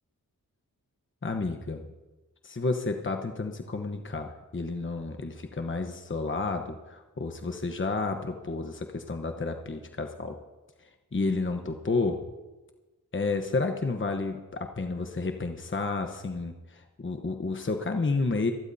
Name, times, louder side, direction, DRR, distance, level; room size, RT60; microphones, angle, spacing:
voice 1, 1.2-1.8 2.4-10.4 11.1-12.2 13.1-18.5, left 3 dB, 35° left, 5 dB, 1.1 m, -31 dB
25.5 x 11.5 x 2.8 m, 1.2 s
cardioid pair, 45°, 35 cm